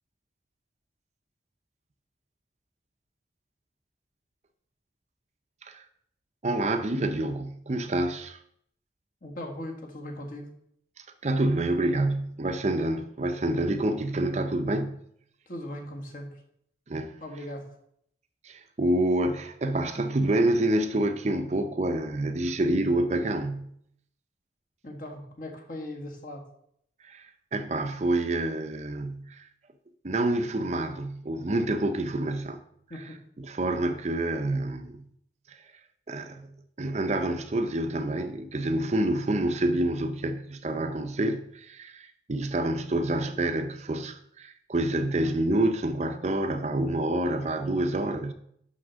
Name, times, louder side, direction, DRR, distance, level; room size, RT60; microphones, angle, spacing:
voice 1, 6.4-8.4 11.2-15.0 16.9-17.2 18.4-23.7 27.0-29.5 30.0-32.6 33.4-35.1 35.5-35.6 36.1-36.5 36.8-48.3, right 1 dB, 35° right, 0.5 m, -27 dB
voice 2, 9.2-10.5 15.5-16.4 17.2-17.7 24.8-26.5 32.9-33.2, left 1 dB, 45° left, 1.6 m, -39 dB
6.0 x 5.9 x 6.3 m
head